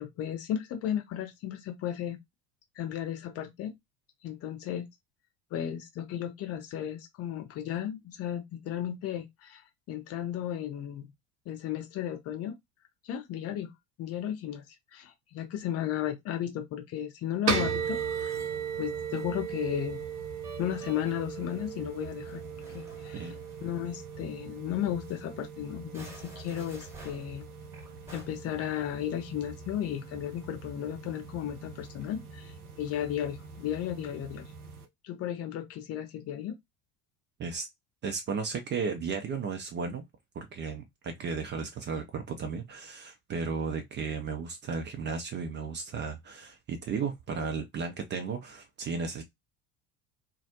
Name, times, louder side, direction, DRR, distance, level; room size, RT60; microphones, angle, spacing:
voice 1, 0.0-2.2 2.8-3.7 4.2-4.9 5.5-11.1 11.5-12.6 13.0-13.7 14.0-14.6 14.9-18.4 18.8-20.0 20.6-22.4 22.7-23.3 23.6-27.4 28.1-34.5 35.0-36.5, left 10 dB, 35° left, 0.6 m, -34 dB
Musical instrument, 17.4-24.3 24.6-24.7 25.0-25.2 25.8-28.3, right 1 dB, 5° right, 0.9 m, -53 dB
sound 1, 17.5-34.8, right 6 dB, 90° right, 0.5 m, -38 dB
voice 2, 38.0-40.0 40.3-49.2, right 5 dB, 25° right, 0.4 m, -34 dB
2.2 x 2.0 x 2.7 m
figure-of-eight pair, 65°, 44 cm